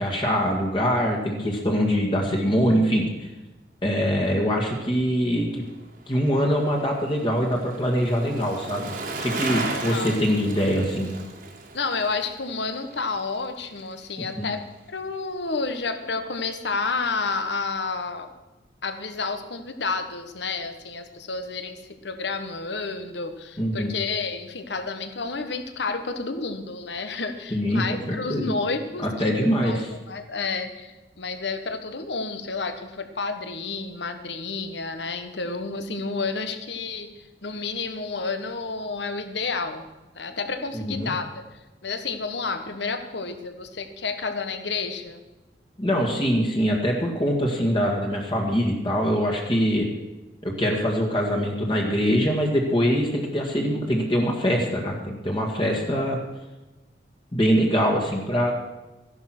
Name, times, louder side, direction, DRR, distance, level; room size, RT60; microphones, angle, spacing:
voice 1, 0.0-3.1 3.8-5.6 6.1-8.9 9.2-11.1 14.4-14.5 23.6-23.9 27.5-28.5 29.2-29.9 40.7-41.1 45.8-49.9 50.4-56.2 57.3-58.5, equal, 25° left, 0 dB, 1.9 m, -23 dB
Bicycle, 5.5-14.0 14.3-14.4, right 3 dB, 50° right, 1.9 m, -36 dB
voice 2, 9.5-10.1 11.7-14.6 14.9-18.3 18.8-29.3 29.6-29.8 30.1-37.1 37.4-39.8 40.1-41.3 41.8-45.2, left 4 dB, 70° left, 8 dB, 1.4 m, -30 dB
14.0 x 11.0 x 6.1 m, 1.1 s
head